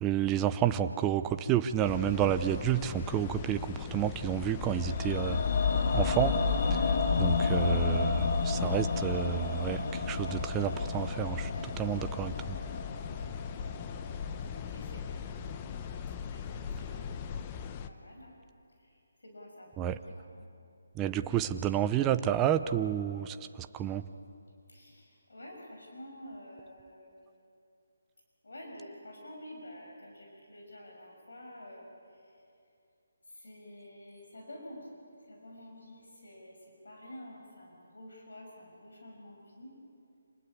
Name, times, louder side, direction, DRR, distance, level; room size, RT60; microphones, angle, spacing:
voice 1, 0.0-5.4 5.9-6.4 6.7-6.8 7.2-11.5 11.8-12.6 19.8-20.0 21.0-24.0, right 10 dB, 15° right, 9 dB, 0.6 m, -30 dB
sound 1, 1.8-17.9, left 7 dB, 20° left, 0.8 m, -40 dB
sound 2, 4.7-14.9 15.1-15.2, left 4 dB, 50° left, 1.9 m, -31 dB
voice 2, 14.5-15.3 16.2-17.6 17.9-18.4 18.8-20.5 24.7-27.3 28.4-32.4 33.3-35.0 35.3-39.8, left 1 dB, 85° left, 0 dB, 6.4 m, -49 dB
27.0 x 20.0 x 8.6 m, 2.5 s
hypercardioid pair, 165°, 0 cm